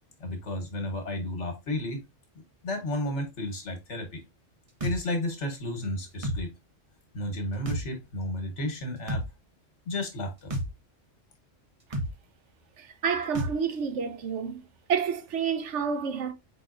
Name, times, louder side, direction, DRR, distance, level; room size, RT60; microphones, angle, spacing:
voice 1, 0.2-2.0 2.6-4.2 4.8-6.5 7.1-9.2 9.8-10.5, left 1 dB, 70° left, 1.5 m, -32 dB
sound 1, 4.8-5.0 6.2-6.4 7.7-7.8 9.1-9.3 10.5-10.7 11.9-12.1 13.3-13.5, equal, 30° right, 0.8 m, -30 dB
voice 2, 12.8-14.6 14.9-16.3, right 6 dB, 75° right, 1.0 m, -29 dB
4.7 x 3.9 x 2.4 m
omnidirectional pair, 1.3 m